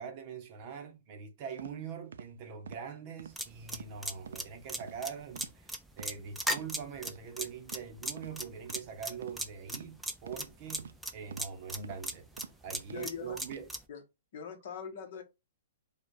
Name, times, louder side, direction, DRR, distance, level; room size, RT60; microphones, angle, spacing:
voice 1, 0.0-13.7, right 7 dB, 30° right, 0.8 m, -43 dB
sound 1, 1.6-1.7 2.1-2.3 2.7-2.8 3.2-3.4 3.7-3.9 4.2-4.4 4.8-5.0 5.3-5.6 5.9-6.1 6.5-6.7 7.1-7.2 7.7-7.9 8.2-8.3 8.7-8.8 9.2-9.4 9.7-9.9 10.3-10.4 10.8-10.9 11.3-11.5 11.8-12.0 12.4-12.5 12.9-13.1 13.4-13.6, right 6 dB, 80° right, 0.5 m, -46 dB
sound 2, 3.4-13.8, right 1 dB, ahead, 0.4 m, -37 dB
voice 2, 12.9-13.4 13.9-14.0 14.3-15.2, left 7 dB, 45° left, 1.1 m, -42 dB
4.9 x 2.3 x 4.6 m
hypercardioid pair, 170°, 0 cm